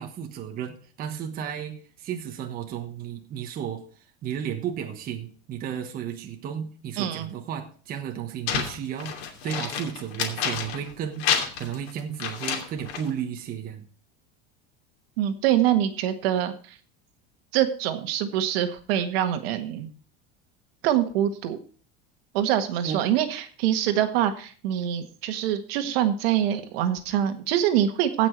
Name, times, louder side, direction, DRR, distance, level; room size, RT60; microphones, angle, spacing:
voice 1, 0.0-11.2 11.6-13.8 22.8-23.0, right 9 dB, 30° right, 4 dB, 1.3 m, -33 dB
voice 2, 7.0-7.3 15.2-16.8 17.5-19.9 20.8-21.6 22.3-28.3, right 11 dB, 65° right, 8 dB, 1.7 m, -24 dB
sound 1, 8.5-10.9 11.2-13.1, left 7 dB, 75° left, 3.0 m, -29 dB
16.5 x 6.1 x 4.6 m, 0.41 s
supercardioid pair, 170°, 32 cm